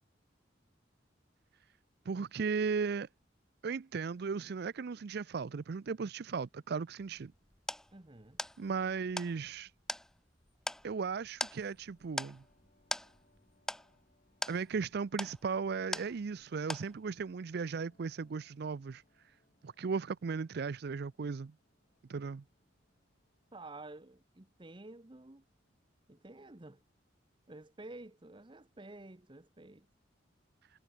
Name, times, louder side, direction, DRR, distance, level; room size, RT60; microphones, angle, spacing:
voice 1, 2.1-3.1 3.6-7.3 8.6-9.7 10.8-12.4 14.5-19.0 19.6-21.5 22.1-22.4, right 5 dB, 60° right, 0.4 m, -36 dB
sound 1, 7.0-16.4 16.7-17.3, left 1 dB, 5° left, 0.3 m, -42 dB
voice 2, 7.9-8.4 23.5-25.4 26.1-26.8 27.5-29.9, right 2 dB, 25° right, 1.0 m, -51 dB
sound 2, 10.8-26.2, left 1 dB, 45° left, 7.0 m, -74 dB
head